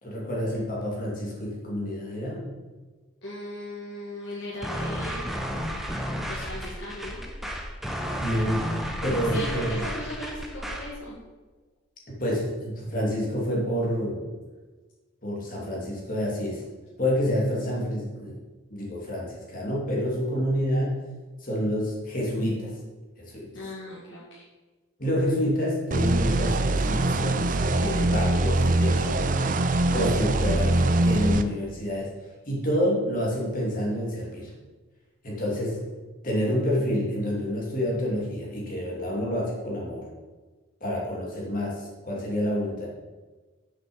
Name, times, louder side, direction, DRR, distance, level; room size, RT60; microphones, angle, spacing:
voice 1, 0.0-2.5 8.2-8.7 9.0-9.8 12.1-14.3 15.2-16.6 17.0-18.4 18.7-20.9 21.4-22.7 23.2-23.5 25.0-29.5 29.9-32.1 32.5-34.5 35.2-35.8 36.2-40.1 40.8-42.9, equal, 40° left, -3 dB, 2.9 m, -28 dB
voice 2, 3.2-5.3 6.3-7.2 9.0-11.2 23.5-24.4, left 1 dB, 55° left, -7 dB, 2.2 m, -38 dB
sound 1, 4.6-11.0, equal, ahead, 0.8 m, -32 dB
sound 2, 25.9-31.4, right 2 dB, 40° right, 0.5 m, -23 dB
7.5 x 6.7 x 7.1 m, 1.3 s
head